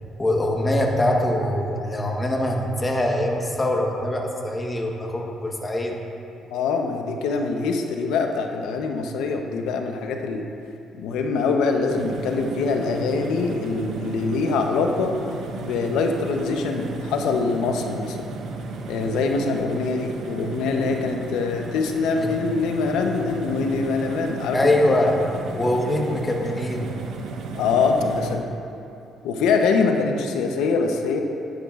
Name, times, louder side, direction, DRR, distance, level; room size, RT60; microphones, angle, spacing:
voice 1, 0.2-5.9 22.2-22.3 24.5-25.3 25.5-26.9, left 1 dB, 20° left, 1 dB, 1.2 m, -23 dB
voice 2, 6.5-10.4 11.0-15.1 15.6-18.2 18.9-25.0 27.4-28.5 29.2-31.2, left 4 dB, 85° left, 3 dB, 0.8 m, -24 dB
Engine Diesel Train Drive, 11.9-28.4, right 3 dB, 70° right, 0.9 m, -34 dB
11.0 x 10.5 x 2.5 m, 2.7 s
cardioid pair, 85°, 0 cm